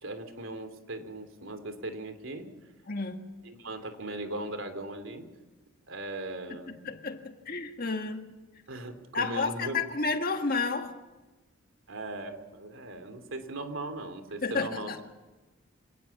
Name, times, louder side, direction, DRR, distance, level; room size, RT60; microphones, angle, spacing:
voice 1, 0.0-2.5 3.4-5.3 5.9-6.7 8.7-9.8 11.9-15.0, right 2 dB, 70° right, 3.0 m, -38 dB
voice 2, 2.9-3.2 6.5-8.3 9.1-11.0 13.0-13.1 14.4-15.0, left 4 dB, 45° left, 1.8 m, -31 dB
26.5 x 18.5 x 7.2 m
head